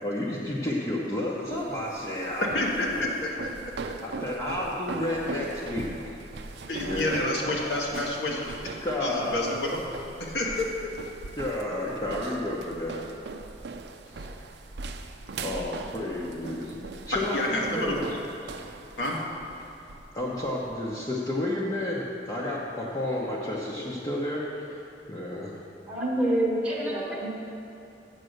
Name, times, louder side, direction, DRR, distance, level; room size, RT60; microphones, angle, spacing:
voice 1, 0.0-3.0 4.0-6.2 6.9-7.4 8.8-9.6 11.4-13.1 14.2-14.3 15.4-16.8 17.1-18.2 18.4-18.5 20.1-24.8 25.1-25.6, left 1 dB, 20° left, -7 dB, 0.9 m, -31 dB
sound 1, 1.5-20.7, right 3 dB, 70° right, 0.5 m, -40 dB
voice 2, 2.4-3.7 6.7-8.7 9.0-9.8 10.2-10.7 14.2-14.3 17.3-18.0 19.0-19.2, left 1 dB, 80° left, -3 dB, 1.4 m, -29 dB
voice 3, 25.9-27.3, right 1 dB, 10° right, -5 dB, 1.2 m, -27 dB
7.9 x 6.7 x 6.5 m, 2.9 s
head